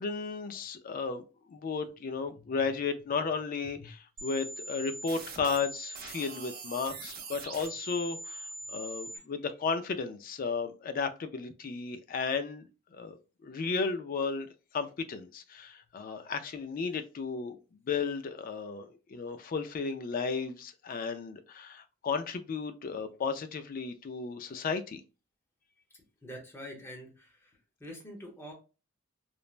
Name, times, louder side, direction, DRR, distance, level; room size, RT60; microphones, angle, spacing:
voice 1, 0.0-13.2 13.4-17.6 17.9-25.0, left 5 dB, 40° left, 0.3 m, -34 dB
sound 1, 4.2-9.2, right 3 dB, 45° right, 0.6 m, -42 dB
voice 2, 26.2-28.5, equal, 10° left, 0.8 m, -46 dB
3.2 x 2.1 x 2.4 m
head